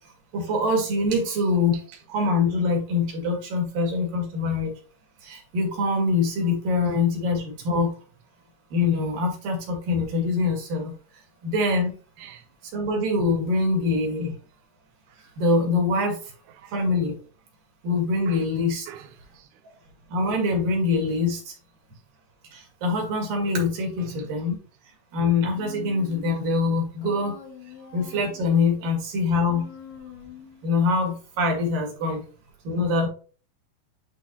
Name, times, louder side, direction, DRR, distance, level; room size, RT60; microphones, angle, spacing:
voice 1, 0.3-1.7 2.1-4.7 5.2-7.9 8.7-10.9 11.4-11.9 12.7-14.3 15.2-16.2 16.7-17.2 17.8-18.9 20.1-21.5 22.5-24.6 25.1-27.3 27.9-29.6 30.6-32.2 32.7-33.1, left 3 dB, 70° right, 3.6 m, -24 dB
voice 2, 1.4-2.0 12.2-12.4 16.6-16.7 18.3-18.5 18.9-19.5 24.0-24.3 28.8-29.0 32.0-32.2, right 10 dB, 90° right, 2.5 m, -45 dB
Human voice, 25.5-26.5 27.0-28.6 29.4-30.7, left 8 dB, 85° left, 3.4 m, -44 dB
10.5 x 3.7 x 2.8 m
omnidirectional pair, 4.2 m